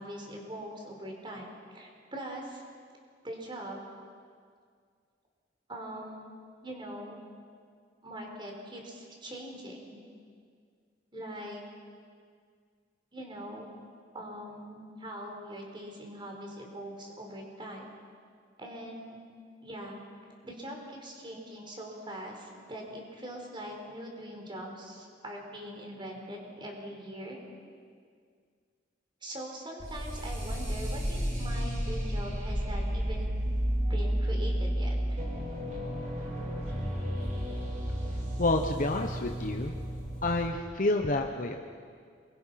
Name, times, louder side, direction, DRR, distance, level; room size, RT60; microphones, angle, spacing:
voice 1, 0.0-1.5 1.7-2.6 3.2-3.8 5.7-6.3 6.6-7.2 8.0-10.0 11.1-11.6 13.1-13.7 14.1-17.9 18.6-19.2 19.6-20.0 20.4-27.4 29.2-33.3 33.8-35.2, equal, 30° right, 1 dB, 4.8 m, -42 dB
sound 1, 29.8-40.5, equal, 45° right, 5.0 m, -32 dB
voice 2, 38.4-39.8 40.2-41.6, left 2 dB, 50° left, 3 dB, 1.1 m, -29 dB
28.5 x 22.5 x 5.9 m, 2.1 s
head